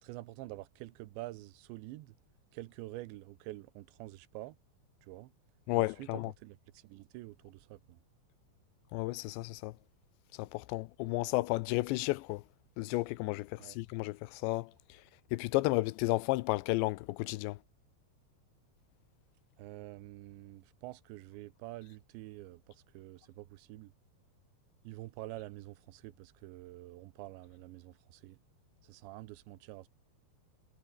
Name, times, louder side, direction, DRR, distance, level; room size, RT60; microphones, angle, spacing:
voice 1, 0.0-2.2 2.5-4.6 5.0-5.3 5.7-8.0 13.6-13.8 19.6-23.9 24.8-28.4 28.8-29.9, right 18 dB, 80° right, 3.2 m, -47 dB
voice 2, 5.7-6.3 8.9-9.7 10.4-12.4 12.8-14.7 15.3-17.6, left 20 dB, 85° left, 2.9 m, -32 dB
omnidirectional pair, 5.2 m